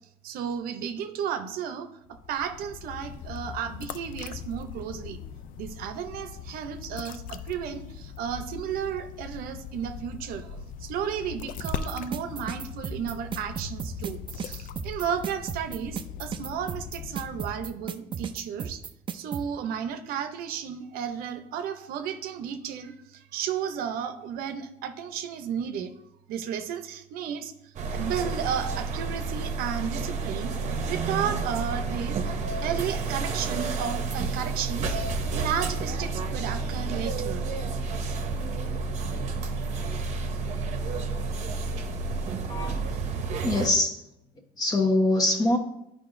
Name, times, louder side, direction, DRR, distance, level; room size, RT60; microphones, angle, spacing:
voice 1, 0.2-1.9 2.3-5.2 5.6-18.8 19.1-25.9 26.3-27.5 27.9-30.6 30.9-32.2 32.6-35.0 35.3-37.4, right 8 dB, 85° right, 8 dB, 0.7 m, -33 dB
sound 1, 2.1-18.0, left 7 dB, 65° left, 0.4 m, -40 dB
sound 2, 11.6-19.4, right 7 dB, 35° right, 0.4 m, -35 dB
sound 3, 27.8-43.7, right 4 dB, 50° right, 0.8 m, -30 dB
voice 2, 42.5-42.9 43.4-44.0 44.6-45.6, left 2 dB, 25° left, 3 dB, 1.1 m, -23 dB
11.0 x 5.1 x 2.6 m, 0.81 s
cardioid pair, 130°, 15 cm